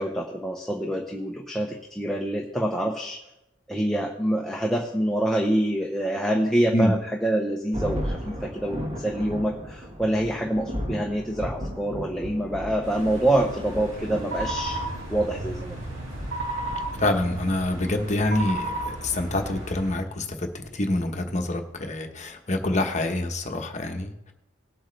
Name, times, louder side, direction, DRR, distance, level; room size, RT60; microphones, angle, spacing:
voice 1, 0.0-3.2 3.7-14.8 15.1-15.8, right 1 dB, ahead, -1 dB, 0.8 m, -26 dB
Thunder, 7.7-21.7, equal, 30° right, 1.6 m, -37 dB
sound 1, 12.8-19.9, right 1 dB, 90° right, 4.9 m, -34 dB
voice 2, 17.0-24.3, left 1 dB, 35° left, 4 dB, 1.1 m, -26 dB
19.0 x 8.0 x 3.3 m, 0.89 s
head